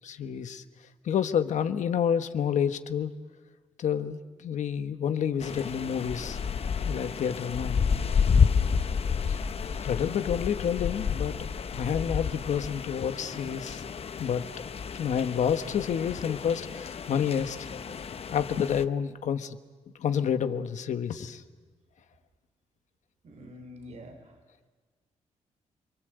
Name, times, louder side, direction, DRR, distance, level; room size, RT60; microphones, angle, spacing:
voice 1, 0.0-0.6 1.0-3.1 3.8-6.4 6.8-7.8 9.3-9.4 9.8-11.4 11.7-13.8 14.2-14.5 14.9-17.6 18.3-19.6 20.0-21.4, left 8 dB, 75° left, 9 dB, 1.4 m, -29 dB
sound 1, 5.4-18.9, left 6 dB, 55° left, 0.9 m, -30 dB
voice 2, 23.2-24.4, equal, 65° right, 5 dB, 3.5 m, -47 dB
30.0 x 23.0 x 8.1 m, 1.4 s
cardioid pair, 80°, 12 cm